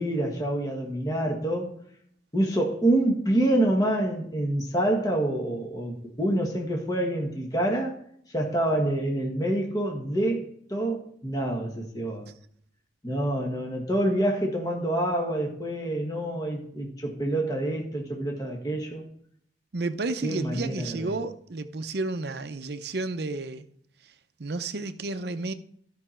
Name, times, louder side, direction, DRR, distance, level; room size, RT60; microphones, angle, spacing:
voice 1, 0.0-1.7 2.3-8.0 8.3-12.3 13.0-19.0 20.2-21.1, right 1 dB, 20° left, 1.5 m, -27 dB
voice 2, 19.7-23.6 24.4-25.5, right 3 dB, 55° right, 0.6 m, -31 dB
13.0 x 5.6 x 4.4 m
head